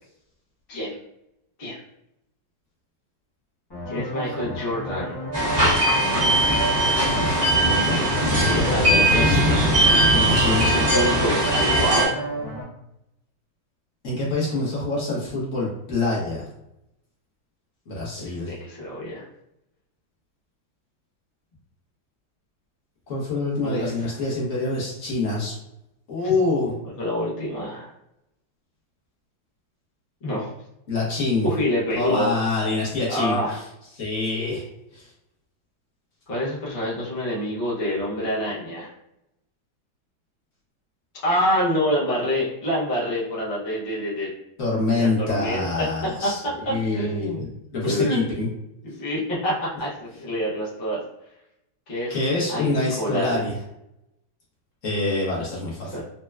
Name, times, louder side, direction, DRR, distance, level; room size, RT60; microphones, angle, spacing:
sound 1, 3.7-12.6, equal, 15° left, 0.8 m, -32 dB
voice 1, 3.9-5.2 7.7-9.2 10.4-12.2 18.2-19.3 23.6-24.1 26.2-26.3 27.0-27.9 30.2-30.5 31.4-32.3 33.1-33.6 36.3-38.9 41.2-44.3 45.0-45.9 46.2-46.3 46.6-47.4 47.8-48.2 48.8-51.0 51.9-53.4 55.8-56.0, left 1 dB, 70° left, -7 dB, 0.5 m, -27 dB
sound 2, 5.3-12.1, right 1 dB, 75° right, 0.3 m, -20 dB
voice 2, 7.3-8.1 8.4-9.6 10.1-10.6 14.0-16.4 17.9-18.5 23.1-25.5 26.1-26.7 30.9-31.5 31.9-33.6 33.9-34.7 34.9-35.1 44.6-46.4 46.7-48.5 52.1-53.5 54.8-56.0, left 2 dB, 55° left, -6 dB, 0.9 m, -26 dB
4.2 x 2.2 x 2.2 m, 0.84 s
omnidirectional pair, 2.3 m